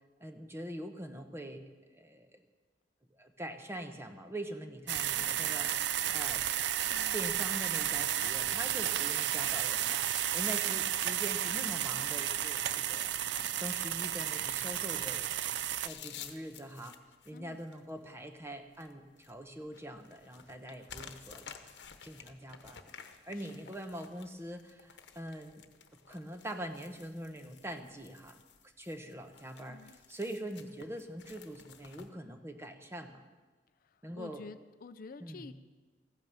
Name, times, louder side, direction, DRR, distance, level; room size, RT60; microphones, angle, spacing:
voice 1, 0.2-1.6 1.9-2.4 3.1-6.4 7.1-13.1 13.5-15.3 15.8-17.0 17.2-21.4 22.0-22.8 23.2-25.6 26.1-28.4 28.8-33.2 34.0-34.4 35.2-35.5, right 1 dB, 15° right, 6 dB, 1.0 m, -43 dB
sound 1, 4.9-15.9, right 11 dB, 75° right, 0.5 m, -32 dB
sound 2, 13.4-32.1, left 7 dB, 85° left, 1.0 m, -53 dB
voice 2, 17.3-17.6 23.3-23.7 29.7-30.0 33.8-35.5, left 4 dB, 55° left, 12 dB, 0.5 m, -50 dB
15.0 x 9.0 x 6.9 m, 1.3 s
head